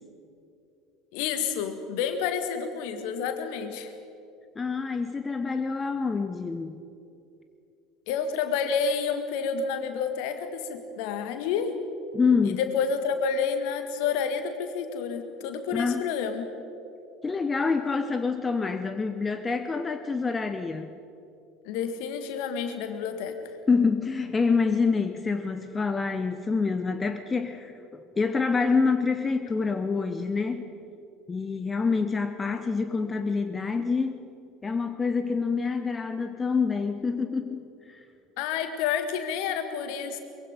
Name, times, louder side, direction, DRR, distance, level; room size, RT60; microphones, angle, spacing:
voice 1, 1.1-3.9 8.1-11.7 12.5-16.5 21.6-23.4 38.4-40.2, left 6 dB, 55° left, 8 dB, 1.8 m, -29 dB
voice 2, 4.6-6.8 12.1-12.6 15.7-16.0 17.2-20.9 23.7-27.7 28.2-30.7 31.3-34.2 34.6-38.0, left 4 dB, 20° left, 9 dB, 0.9 m, -26 dB
23.0 x 22.5 x 5.2 m, 2.7 s
figure-of-eight pair, 65°, 0 cm